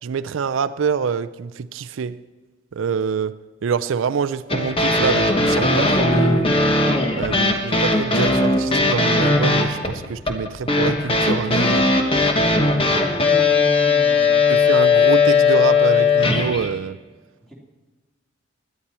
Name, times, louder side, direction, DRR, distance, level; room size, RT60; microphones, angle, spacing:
voice 1, 0.0-2.2 2.7-6.5 7.1-11.9 14.5-17.0, right 6 dB, 75° right, 0.4 m, -25 dB
sound 1, 4.5-16.7, left 3 dB, 25° left, 1.3 m, -18 dB
voice 2, 12.6-14.5 17.5-17.6, equal, ahead, 2.7 m, -36 dB
17.5 x 11.5 x 4.3 m
head